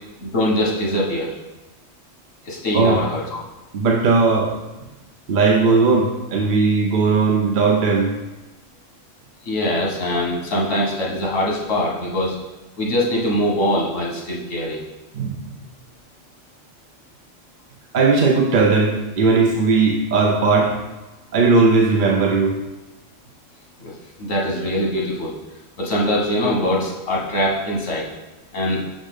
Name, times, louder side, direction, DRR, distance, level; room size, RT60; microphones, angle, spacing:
voice 1, 0.2-1.3 2.4-3.2 9.5-12.4 12.8-14.8 23.8-25.4 25.8-28.1 28.5-28.8, left 1 dB, 90° left, -2 dB, 1.5 m, -22 dB
voice 2, 2.7-3.0 3.7-4.5 5.3-8.1 15.1-15.4 17.9-20.7 21.3-22.6, right 4 dB, 55° right, 0 dB, 0.6 m, -17 dB
6.3 x 5.1 x 3.6 m, 1.1 s
omnidirectional pair, 1.3 m